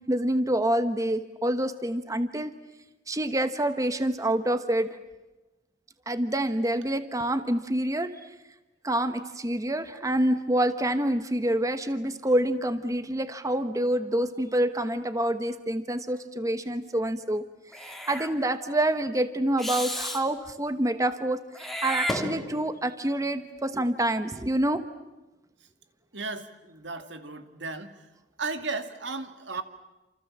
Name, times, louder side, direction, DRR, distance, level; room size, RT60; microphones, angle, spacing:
voice 1, 0.1-2.5 3.1-4.9 6.1-8.1 8.8-17.4 17.7-24.8, right 1 dB, 20° right, 10 dB, 1.1 m, -27 dB
Meow / Hiss, 17.7-18.3 19.6-20.2 21.5-22.8, equal, ahead, 2.7 m, -32 dB
voice 2, 26.1-28.1 28.4-29.6, right 3 dB, 75° right, 8 dB, 2.4 m, -35 dB
29.0 x 28.0 x 7.4 m, 1.1 s
head